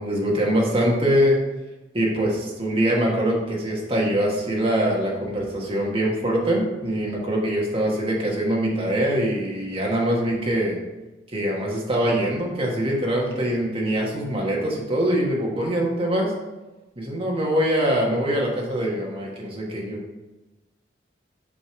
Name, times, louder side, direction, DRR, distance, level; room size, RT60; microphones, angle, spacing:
voice 1, 0.0-1.4 1.9-10.8 11.3-16.3 17.0-20.1, equal, 30° right, -2 dB, 1.3 m, -23 dB
7.7 x 3.1 x 5.0 m, 1.1 s
head